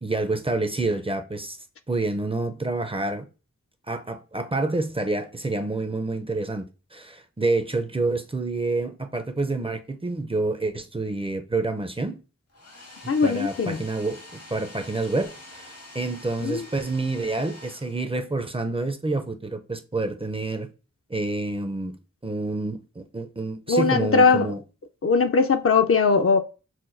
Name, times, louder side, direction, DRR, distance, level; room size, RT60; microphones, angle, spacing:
voice 1, 0.0-1.6 1.9-3.3 3.9-6.6 6.9-12.2 13.0-20.7 21.1-22.0 22.2-24.6, right 2 dB, 20° right, 0.5 m, -28 dB
Domestic sounds home sounds, 12.5-18.4, left 1 dB, 85° left, 1.5 m, -46 dB
voice 2, 13.1-13.8 16.4-16.6 23.7-24.5 25.0-26.4, left 4 dB, 50° left, 0.4 m, -20 dB
5.8 x 2.2 x 2.5 m
cardioid pair, 50°, 30 cm